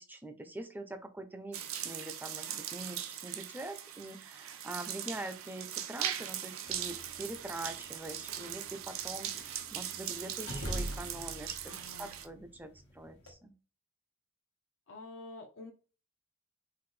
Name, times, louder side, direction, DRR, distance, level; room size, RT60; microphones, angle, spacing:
voice 1, 0.0-13.5, right 1 dB, 10° right, 8 dB, 0.4 m, -44 dB
sound 1, 1.5-12.3, right 10 dB, 85° right, 0.5 m, -40 dB
sound 2, 6.6-13.3, equal, 85° left, 1.2 m, -45 dB
voice 2, 11.7-12.2 14.9-15.7, left 2 dB, 65° left, 0 dB, 0.7 m, -48 dB
3.9 x 2.5 x 3.1 m, 0.36 s
head